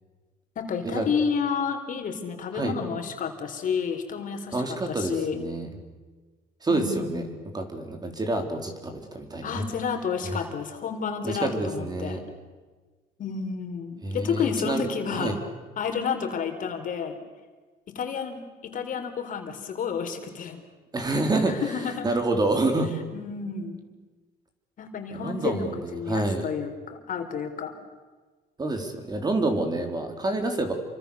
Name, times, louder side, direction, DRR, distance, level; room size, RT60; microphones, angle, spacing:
voice 1, 0.6-5.4 6.7-7.4 9.4-12.2 13.2-15.4 15.8-17.2 17.9-20.6 21.5-22.1 23.1-23.8 24.8-25.7 25.9-27.7, left 6 dB, 50° left, 5 dB, 3.9 m, -30 dB
voice 2, 4.5-5.7 6.6-7.3 7.5-9.7 11.2-12.2 14.0-15.4 20.9-21.6 22.0-22.9 25.1-26.5 28.6-30.7, right 2 dB, 25° right, 5 dB, 4.0 m, -28 dB
28.5 x 25.5 x 7.0 m, 1.3 s
cardioid pair, 110°, 17 cm